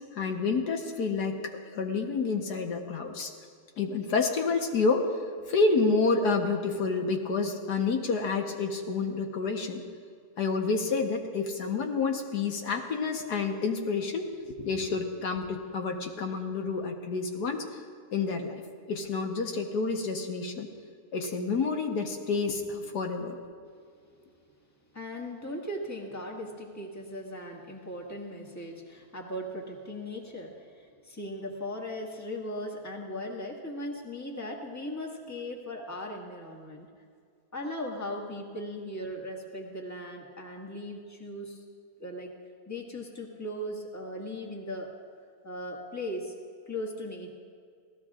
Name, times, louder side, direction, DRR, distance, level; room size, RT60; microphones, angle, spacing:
voice 1, 0.1-1.4 1.7-3.3 3.8-5.1 5.5-9.8 10.4-17.8 18.1-18.6 18.9-20.7 21.1-23.4, left 4 dB, 75° left, 3 dB, 1.7 m, -29 dB
voice 2, 24.9-36.9 37.5-41.6 42.0-42.3 42.7-44.9 45.4-46.3 46.7-47.3, left 1 dB, 10° left, -1 dB, 1.6 m, -38 dB
26.5 x 17.5 x 2.4 m, 2.2 s
omnidirectional pair, 1.7 m